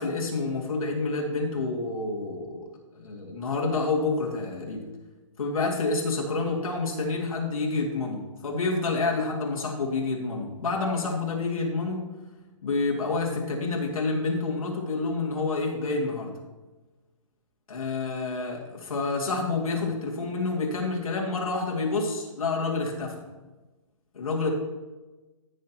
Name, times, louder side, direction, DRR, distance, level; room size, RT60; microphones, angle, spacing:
voice 1, 0.0-4.8 5.4-12.1 12.6-16.3 17.7-23.2 24.1-24.5, left 3 dB, 90° left, -2 dB, 2.3 m, -28 dB
14.5 x 6.5 x 3.0 m, 1.2 s
hypercardioid pair, 165°, 17 cm